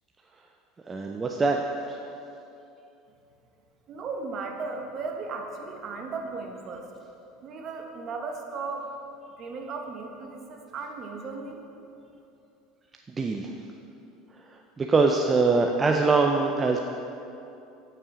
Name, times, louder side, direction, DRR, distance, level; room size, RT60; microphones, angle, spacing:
voice 1, 0.9-1.6 1.9-2.0 13.1-13.5 14.3-16.8, right 3 dB, 20° right, 2 dB, 0.4 m, -23 dB
voice 2, 3.9-6.9 7.4-8.9 9.4-11.6, right 4 dB, 45° right, 3 dB, 0.9 m, -36 dB
8.5 x 5.6 x 3.7 m, 2.8 s
supercardioid pair, 105°, 0 cm